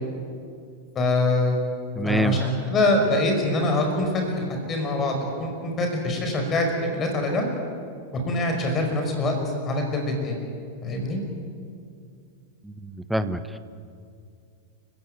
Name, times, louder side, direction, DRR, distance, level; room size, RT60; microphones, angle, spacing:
voice 1, 1.0-1.6 2.1-4.1 4.4-7.5 8.1-9.4 9.7-10.4 10.8-11.2, left 2 dB, 25° left, 3 dB, 5.2 m, -24 dB
voice 2, 1.9-2.4 12.6-13.6, equal, 5° right, 12 dB, 1.2 m, -26 dB
29.5 x 16.0 x 9.2 m, 2.3 s
figure-of-eight pair, 90°, 0 cm